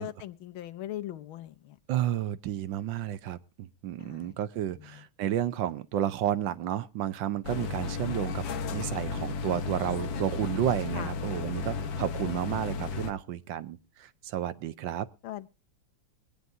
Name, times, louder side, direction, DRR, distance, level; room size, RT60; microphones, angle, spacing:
voice 1, 0.0-1.8 4.0-4.3 4.7-5.0 10.9-11.1 15.2-15.5, left 13 dB, 90° left, 10 dB, 1.7 m, -40 dB
voice 2, 1.9-8.4 8.7-15.1, right 11 dB, 70° right, 14 dB, 1.4 m, -31 dB
sound 1, 7.4-13.1, left 4 dB, 70° left, 1.7 m, -34 dB
23.5 x 9.4 x 2.6 m, 0.33 s
omnidirectional pair, 2.2 m